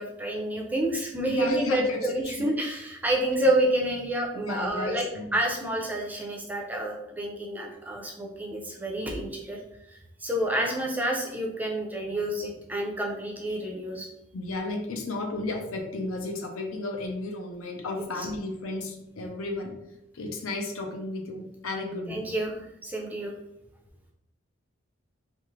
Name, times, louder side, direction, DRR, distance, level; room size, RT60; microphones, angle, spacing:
voice 1, 0.0-5.1 5.3-9.6 9.9-14.1 18.0-18.3 22.1-23.3, right 1 dB, 10° right, -1 dB, 0.4 m, -29 dB
voice 2, 1.3-2.0 2.4-2.5 4.4-5.2 11.0-11.2 14.3-19.7 20.1-22.3, left 2 dB, 85° left, 3 dB, 0.6 m, -33 dB
2.5 x 2.4 x 3.0 m, 0.84 s
head